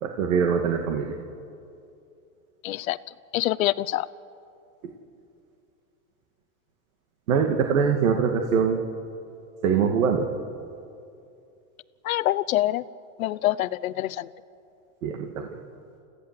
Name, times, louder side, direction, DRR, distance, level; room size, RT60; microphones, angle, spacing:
voice 1, 0.0-1.2 7.3-8.8 9.6-10.3 15.0-15.5, right 6 dB, 80° right, 3 dB, 2.1 m, -23 dB
voice 2, 2.6-3.0 3.3-4.1 12.0-12.8 13.2-14.3, left 15 dB, 90° left, 15 dB, 0.8 m, -25 dB
29.5 x 15.5 x 7.6 m, 2.6 s
supercardioid pair, 120°, 40 cm